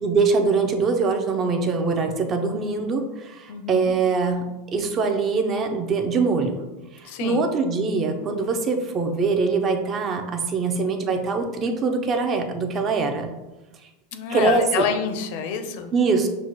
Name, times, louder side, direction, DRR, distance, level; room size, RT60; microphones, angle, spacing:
voice 1, 0.0-6.6 6.9-13.3 14.3-14.8 15.9-16.3, right 4 dB, 25° right, 5 dB, 0.4 m, -23 dB
voice 2, 3.5-3.9 7.0-7.4 14.1-15.9, left 6 dB, 55° left, 7 dB, 0.4 m, -27 dB
5.9 x 2.1 x 2.9 m, 1.0 s
supercardioid pair, 155°, 0 cm